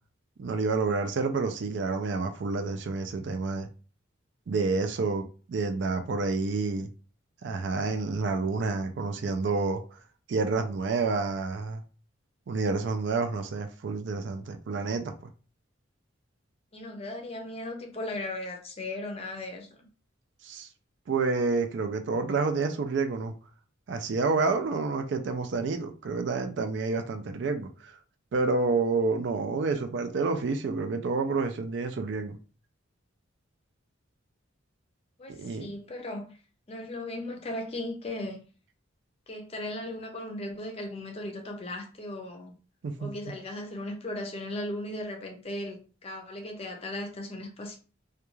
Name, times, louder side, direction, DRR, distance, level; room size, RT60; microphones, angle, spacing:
voice 1, 0.4-3.7 4.5-5.2 5.5-6.9 7.4-10.0 10.3-11.8 12.5-15.3 20.4-20.7 21.1-23.3 23.9-27.9 28.3-32.4 35.3-35.7 42.8-43.1, right 4 dB, 60° right, 0.4 m, -29 dB
voice 2, 16.7-19.9 35.2-36.4 36.7-38.4 39.3-42.5 43.0-47.8, left 1 dB, 30° left, 0.5 m, -37 dB
2.3 x 2.3 x 3.0 m
head